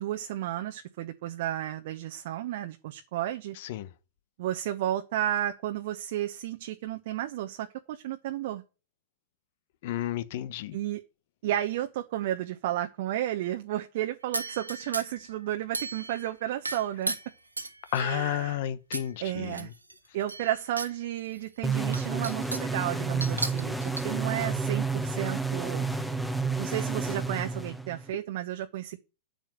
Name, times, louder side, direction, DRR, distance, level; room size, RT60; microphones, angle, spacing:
voice 1, 0.0-3.6 4.4-8.6 10.7-11.0 11.4-17.2 17.9-18.6 19.2-19.7 20.1-25.9 26.6-29.0, right 13 dB, 50° right, 1.0 m, -32 dB
voice 2, 3.6-3.9 9.8-10.8 17.9-19.7, left 12 dB, 50° left, 1.0 m, -32 dB
sound 1, 14.3-15.3 15.7-16.3 16.6-18.2 18.9-19.1 19.5-20.9 21.3-21.4 21.9-22.8 23.2-24.0, right 2 dB, 85° right, 1.5 m, -35 dB
sound 2, 21.6-28.1, right 4 dB, ahead, 1.1 m, -30 dB
8.8 x 7.9 x 6.7 m
figure-of-eight pair, 95°, 0 cm